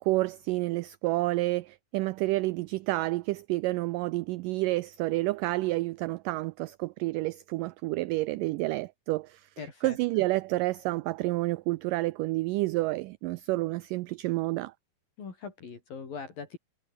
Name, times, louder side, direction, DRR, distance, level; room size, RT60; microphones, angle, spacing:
voice 1, 0.0-9.5 9.8-14.7, right 20 dB, 85° right, 1.9 m, -29 dB
voice 2, 9.6-10.2 15.2-16.6, left 5 dB, 65° left, 6.5 m, -41 dB
omnidirectional pair, 4.4 m